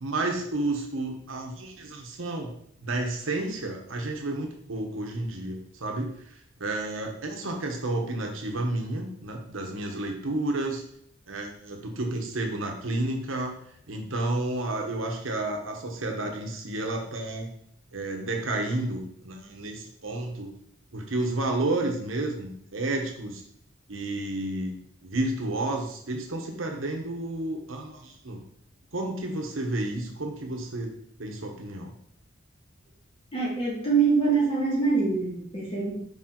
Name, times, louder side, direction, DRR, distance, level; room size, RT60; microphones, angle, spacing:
voice 1, 0.0-2.5 2.8-10.8 11.3-13.6 13.9-17.5 17.9-20.5 20.9-23.4 23.9-24.7 25.0-28.4 28.9-30.9 31.2-31.9, right 2 dB, 75° right, 2 dB, 1.2 m, -31 dB
voice 2, 33.3-36.0, right 4 dB, 30° left, -5 dB, 2.1 m, -24 dB
5.4 x 4.4 x 3.9 m, 0.69 s
head